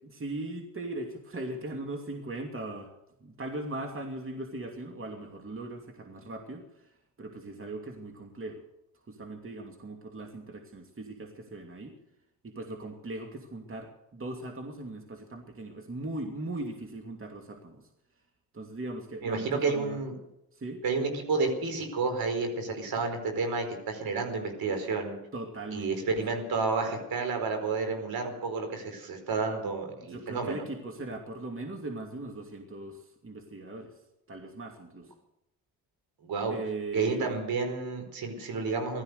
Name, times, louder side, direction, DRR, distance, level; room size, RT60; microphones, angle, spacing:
voice 1, 0.0-2.9 3.2-8.6 9.1-11.9 12.4-17.9 18.5-20.0 20.5-20.8 25.3-26.4 30.1-34.0 34.3-35.1 36.5-37.4, right 2 dB, 35° right, 3 dB, 2.7 m, -39 dB
voice 2, 19.2-20.1 20.8-25.2 25.7-30.6 36.2-36.5 36.9-39.0, right 4 dB, 65° right, 5 dB, 4.7 m, -30 dB
16.5 x 13.0 x 6.7 m, 0.86 s
supercardioid pair, 60°, 39 cm